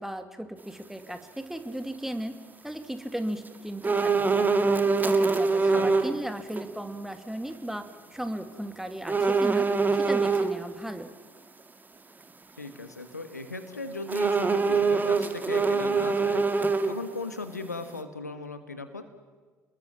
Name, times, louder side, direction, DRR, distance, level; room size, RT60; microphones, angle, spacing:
voice 1, 0.0-2.3 2.6-4.5 5.0-7.9 8.1-9.7 9.9-11.1, right 1 dB, 5° right, 8 dB, 2.5 m, -36 dB
sound 1, 3.8-6.1 6.5-6.7 9.1-10.5 14.1-17.2 17.5-17.6, right 4 dB, 20° right, 2.1 m, -24 dB
voice 2, 5.6-6.0 12.6-19.0, left 3 dB, 85° left, 9 dB, 1.5 m, -38 dB
30.0 x 20.5 x 7.5 m, 1.4 s
figure-of-eight pair, 55°, 9 cm